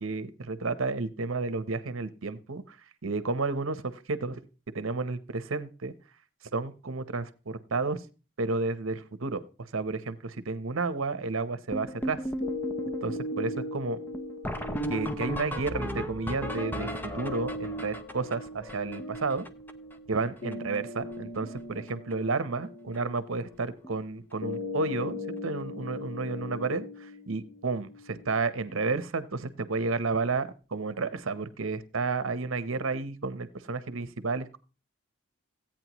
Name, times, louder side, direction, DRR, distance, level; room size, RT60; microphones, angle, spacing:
voice 1, 0.0-2.8 3.0-4.4 4.7-5.9 6.5-8.0 8.4-9.4 9.7-12.2 13.0-14.0 14.9-19.4 20.1-34.6, right 3 dB, 75° right, 13 dB, 0.8 m, -31 dB
sound 1, 11.7-19.9 20.2-20.3 20.5-20.8 21.0-21.6 21.9-22.1 22.9-23.0 23.5-23.6 23.8-24.0 26.3-26.4 28.7-28.8, equal, 10° left, 0.5 m, -36 dB
sound 2, 12.4-28.4, left 2 dB, 50° left, 1.4 m, -39 dB
15.5 x 8.8 x 3.0 m, 0.34 s
head